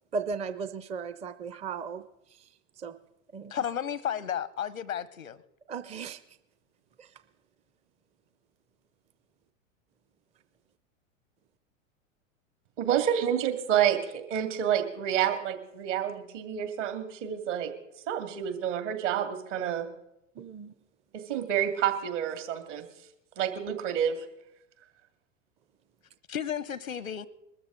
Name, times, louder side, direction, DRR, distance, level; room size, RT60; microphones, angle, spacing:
voice 1, 0.1-2.9 3.3-3.5 5.7-6.4 7.0-7.1 20.4-20.7, right 5 dB, 15° right, 12 dB, 0.5 m, -37 dB
voice 2, 3.5-5.4 26.3-27.3, left 9 dB, 90° left, 19 dB, 0.9 m, -33 dB
voice 3, 12.8-17.7 18.1-19.9 21.3-22.9 23.4-24.2, right 9 dB, 65° right, 6 dB, 2.5 m, -28 dB
21.5 x 13.5 x 3.9 m, 0.84 s
hypercardioid pair, 95°, 40 cm